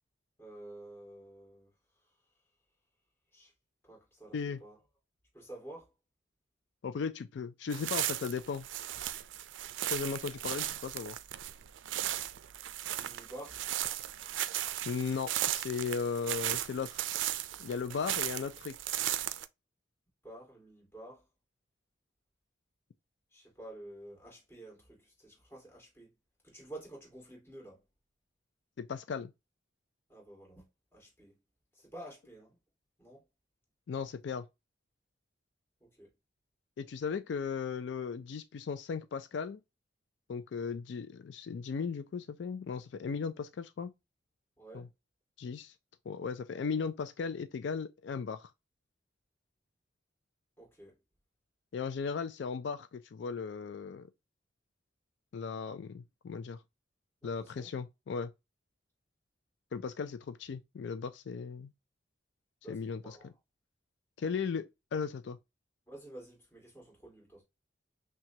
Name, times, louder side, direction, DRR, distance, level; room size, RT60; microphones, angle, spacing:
voice 1, 0.4-1.7 3.3-3.5 3.8-4.8 5.3-5.9 13.0-13.6 20.2-21.2 23.3-26.1 26.4-27.8 30.1-30.7 30.9-31.3 31.7-32.6 33.0-33.2 35.8-36.1 44.6-44.9 50.6-51.0 57.2-57.7 62.6-63.3 65.9-67.4, right 1 dB, 10° left, 2.0 m, -50 dB
voice 2, 6.8-8.7 9.9-11.2 14.9-17.0 17.6-18.7 28.8-29.3 33.9-34.5 36.8-39.6 40.3-43.9 44.7-44.9 45.4-45.7 46.1-48.5 51.7-54.1 55.3-56.6 57.2-58.3 59.7-61.7 62.7-63.2 64.2-65.4, left 5 dB, 70° left, 0.4 m, -36 dB
sound 1, 7.7-19.4, right 12 dB, 90° right, 0.4 m, -36 dB
5.8 x 2.3 x 2.8 m
head